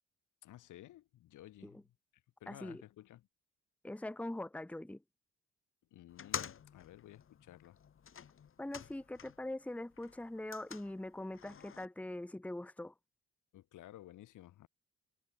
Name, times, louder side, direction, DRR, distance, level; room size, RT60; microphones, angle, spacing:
voice 1, 0.4-1.8 2.4-3.2 5.9-7.8 13.5-14.7, left 14 dB, 80° left, 3.6 m, -54 dB
voice 2, 2.5-2.8 3.8-5.0 8.6-12.9, left 1 dB, 5° left, 1.2 m, -42 dB
sound 1, 6.1-9.5 9.8-11.9, left 7 dB, 45° left, 1.6 m, -47 dB
cardioid pair, 90°, 30 cm